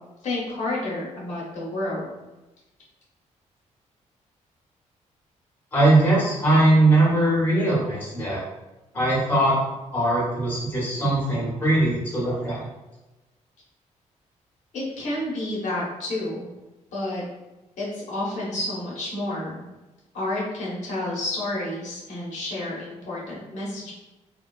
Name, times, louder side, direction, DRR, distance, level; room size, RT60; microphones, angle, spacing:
voice 1, 0.2-2.1 14.7-16.5 16.9-17.2 17.8-19.6 20.1-23.9, left 1 dB, 70° left, -5 dB, 0.9 m, -30 dB
voice 2, 5.7-8.4 8.9-9.5 9.9-12.6, right 2 dB, 15° left, -7 dB, 1.0 m, -20 dB
3.1 x 2.2 x 2.3 m, 1.0 s
wide cardioid pair, 165°, 13 cm